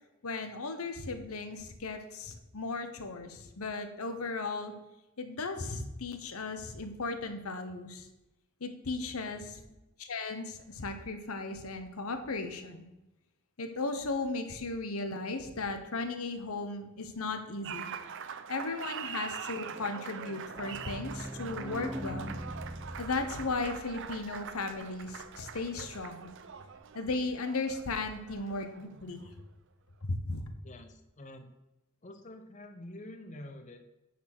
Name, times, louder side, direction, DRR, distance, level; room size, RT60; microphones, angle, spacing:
voice 1, 0.2-4.7 5.2-8.1 8.6-9.6 10.0-12.8 13.6-17.9 18.5-22.4 23.0-26.3 26.9-29.3 30.0-30.5, left 3 dB, 80° left, 8 dB, 1.0 m, -36 dB
voice 2, 9.3-9.8 30.6-31.5 32.0-33.8, left 1 dB, 35° left, 6 dB, 0.7 m, -48 dB
Applause, 17.6-29.4, right 7 dB, 55° right, 0.6 m, -43 dB
sound 1, 20.2-25.7 26.0-26.1 26.3-26.4 26.7-26.8, equal, 5° right, 0.5 m, -43 dB
9.4 x 4.3 x 6.1 m, 0.97 s
head